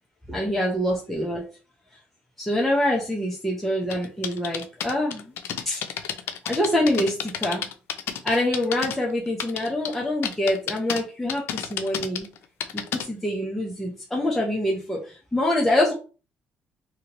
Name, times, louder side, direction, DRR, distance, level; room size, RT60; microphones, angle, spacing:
voice 1, 0.3-1.4 2.4-5.3 5.7-5.8 6.4-7.7 8.2-12.3 12.7-15.9, left 1 dB, 5° left, -3 dB, 0.7 m, -25 dB
sound 1, 3.9-9.0 9.3-10.0 10.2-11.0 11.3-13.1, left 9 dB, 75° left, 0.4 m, -30 dB
2.8 x 2.8 x 2.9 m, 0.35 s
cardioid pair, 120°, 4 cm